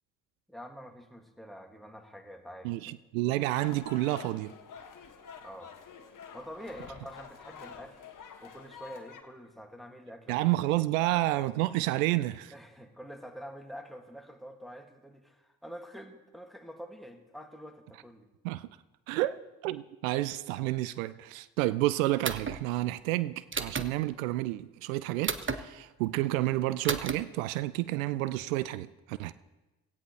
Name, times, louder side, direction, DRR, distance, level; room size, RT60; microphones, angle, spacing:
voice 1, 0.5-2.9 5.4-5.7 6.3-8.0 8.4-10.4 12.5-18.3, equal, ahead, 2.2 m, -46 dB
voice 2, 2.6-4.5 10.3-12.5 18.4-18.7 19.1-29.3, right 17 dB, 85° right, 0.5 m, -30 dB
sound 1, 3.6-9.2, left 6 dB, 50° left, 1.5 m, -48 dB
sound 2, 22.2-22.6 23.5-23.9 25.2-25.6 26.8-27.1, right 5 dB, 30° right, 1.1 m, -32 dB
17.0 x 16.0 x 3.3 m
hypercardioid pair, 40°, 40 cm